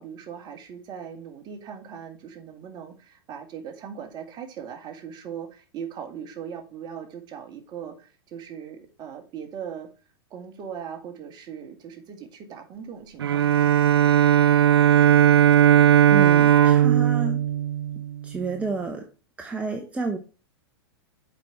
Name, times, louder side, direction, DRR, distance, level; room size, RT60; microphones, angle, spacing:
voice 1, 0.0-9.9 10.3-13.7, right 7 dB, 35° right, 4 dB, 2.0 m, -39 dB
Bowed string instrument, 13.2-18.4, right 11 dB, 85° right, 0.6 m, -18 dB
voice 2, 16.1-17.4 18.2-19.1 19.4-20.2, right 3 dB, 10° right, 3 dB, 1.0 m, -30 dB
7.6 x 5.2 x 4.6 m, 0.33 s
hypercardioid pair, 120°, 13 cm